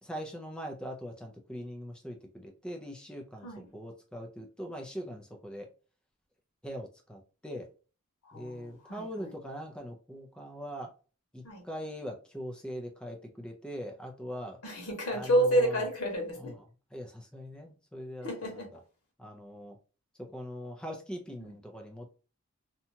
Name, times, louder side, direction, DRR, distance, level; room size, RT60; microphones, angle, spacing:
voice 1, 0.0-5.7 6.6-7.7 8.3-10.9 11.3-14.6 15.1-15.9 16.4-16.6 16.9-18.8 19.2-19.8 20.3-22.1, equal, 5° left, 2 dB, 0.4 m, -41 dB
voice 2, 3.4-3.7 8.3-9.3 11.4-11.6 14.6-16.5 18.2-18.7 21.4-21.6, right 1 dB, 85° left, 1 dB, 1.2 m, -30 dB
2.8 x 2.2 x 2.7 m, 0.36 s
head